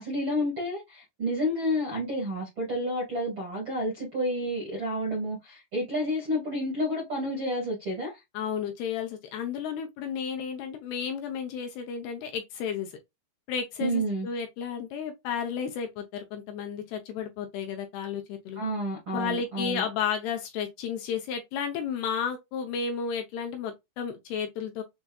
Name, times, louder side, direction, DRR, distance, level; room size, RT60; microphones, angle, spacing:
voice 1, 0.0-8.2 13.8-14.3 18.5-19.8, equal, 60° right, 1.3 m, -30 dB
voice 2, 8.3-13.0 13.5-18.6 19.1-24.8, left 7 dB, 80° left, 2.4 m, -32 dB
6.9 x 2.6 x 2.3 m
omnidirectional pair, 5.1 m